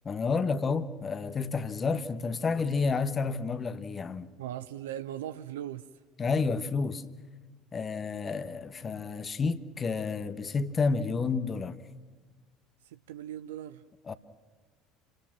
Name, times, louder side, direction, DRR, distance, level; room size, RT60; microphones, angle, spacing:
voice 1, 0.0-4.3 6.2-7.0 7.7-11.8 14.1-14.2, left 4 dB, 25° left, 1.3 m, -30 dB
voice 2, 4.4-5.9 12.8-13.8, right 11 dB, 70° right, 0.6 m, -39 dB
29.0 x 20.0 x 6.1 m
figure-of-eight pair, 65°, 0 cm